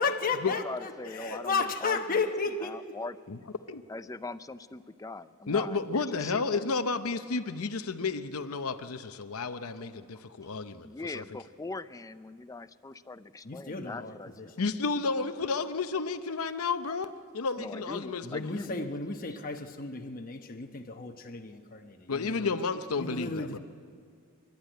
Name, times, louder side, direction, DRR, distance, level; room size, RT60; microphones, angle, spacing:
voice 1, 0.0-2.8 13.4-14.5 18.2-22.5 23.0-23.6, left 4 dB, 40° left, 4 dB, 1.0 m, -33 dB
voice 2, 0.6-2.0 2.6-3.5 3.9-6.7 10.8-14.5 17.6-19.5, left 3 dB, 15° left, 13 dB, 0.5 m, -41 dB
voice 3, 5.5-11.4 14.6-18.5 22.1-23.6, left 4 dB, 85° left, 9 dB, 0.8 m, -32 dB
28.5 x 12.0 x 9.2 m, 2.1 s
head